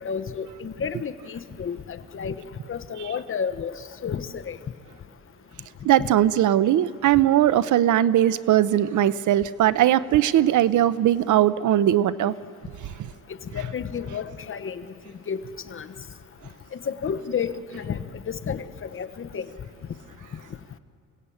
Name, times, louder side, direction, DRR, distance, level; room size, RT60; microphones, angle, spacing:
voice 1, 0.0-3.7 4.0-4.6 6.0-6.1 13.5-14.8 15.3-15.4 15.7-15.9 16.7-19.5, left 6 dB, 40° left, 10 dB, 1.0 m, -31 dB
voice 2, 5.8-12.3, right 12 dB, 70° right, 16 dB, 0.7 m, -20 dB
27.5 x 17.5 x 8.5 m, 2.5 s
cardioid pair, 125°, 32 cm